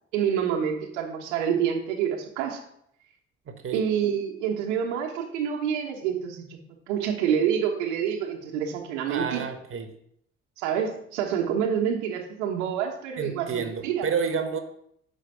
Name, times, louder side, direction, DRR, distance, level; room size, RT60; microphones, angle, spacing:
voice 1, 0.1-2.6 3.7-6.6 6.9-9.4 10.6-14.1, right 8 dB, 70° right, 1 dB, 1.1 m, -27 dB
voice 2, 3.5-3.8 9.0-9.9 13.2-14.6, right 6 dB, 35° right, 6 dB, 1.1 m, -30 dB
6.3 x 5.0 x 5.7 m, 0.70 s
figure-of-eight pair, 45°, 37 cm